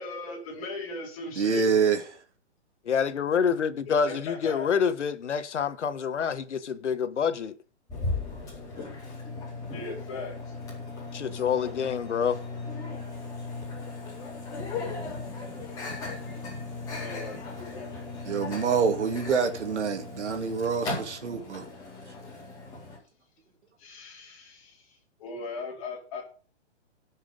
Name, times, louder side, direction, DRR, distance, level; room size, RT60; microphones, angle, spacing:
voice 1, 0.0-1.8 4.1-4.7 9.7-10.5 16.9-17.4 22.2-22.3 23.8-24.9 25.2-26.2, left 3 dB, 30° left, 4.2 m, -38 dB
voice 2, 1.4-2.0 18.2-21.6, right 6 dB, 75° right, 2.5 m, -26 dB
voice 3, 2.9-7.5 11.1-12.4, left 7 dB, 80° left, 1.4 m, -27 dB
Microwave oven, 7.9-23.0, left 3 dB, 10° left, 4.0 m, -37 dB
17.0 x 6.3 x 5.2 m
hypercardioid pair, 175°, 35 cm